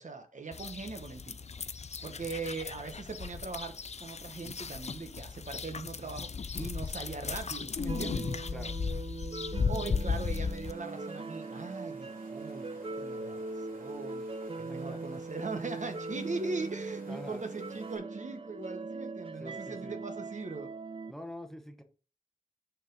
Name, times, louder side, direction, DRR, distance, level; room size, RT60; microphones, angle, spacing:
voice 1, 0.0-1.5 2.0-8.3 9.7-14.2 14.5-20.7, right 3 dB, 60° right, 1.0 m, -40 dB
sound 1, 0.5-10.7, left 5 dB, 50° left, 0.4 m, -36 dB
sound 2, 7.9-21.1, right 3 dB, 40° right, 0.4 m, -40 dB
Water, 10.6-18.0, right 2 dB, 85° right, 2.4 m, -57 dB
voice 2, 14.7-15.0 17.0-17.4 19.4-19.9 21.1-21.8, left 1 dB, 5° left, 1.0 m, -45 dB
6.0 x 4.5 x 5.2 m
wide cardioid pair, 75°, 14 cm